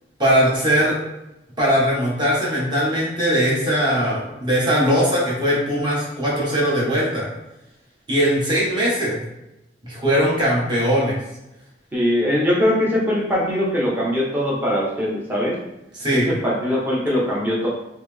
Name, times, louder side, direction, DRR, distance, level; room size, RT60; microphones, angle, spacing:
voice 1, 0.2-1.0 1.6-7.3 8.1-9.2 9.8-11.1 16.0-16.3, equal, 25° right, -6 dB, 1.2 m, -20 dB
voice 2, 11.9-15.6 16.1-17.7, equal, 10° right, -5 dB, 0.9 m, -21 dB
4.0 x 2.0 x 3.3 m, 0.90 s
head